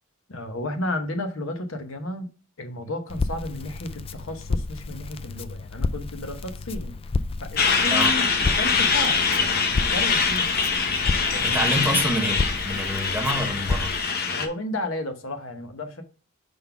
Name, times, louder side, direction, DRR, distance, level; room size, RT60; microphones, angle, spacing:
voice 1, 0.3-2.3 2.6-7.0 7.4-10.5 11.3-12.0 14.3-16.0, left 1 dB, 70° left, 1.1 m, -33 dB
Crackle, 3.1-14.0, left 3 dB, 25° left, 0.3 m, -31 dB
Truck, 7.6-14.5, left 5 dB, 50° left, 0.9 m, -23 dB
voice 2, 11.4-13.9, equal, 10° right, 0.9 m, -27 dB
5.3 x 3.9 x 5.7 m
head